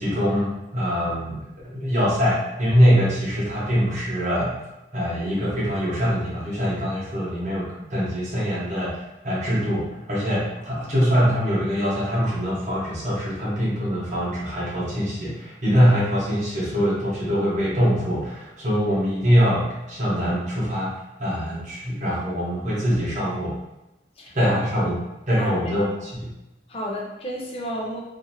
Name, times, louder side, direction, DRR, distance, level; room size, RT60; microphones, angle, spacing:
voice 1, 0.0-4.6 4.9-8.9 9.2-20.9 21.2-23.5 24.3-25.0 25.3-26.3, equal, 40° right, -7 dB, 1.1 m, -23 dB
voice 2, 24.2-24.6 25.4-25.7 26.7-28.0, equal, 30° left, -2 dB, 0.5 m, -32 dB
2.8 x 2.4 x 2.8 m, 0.97 s
head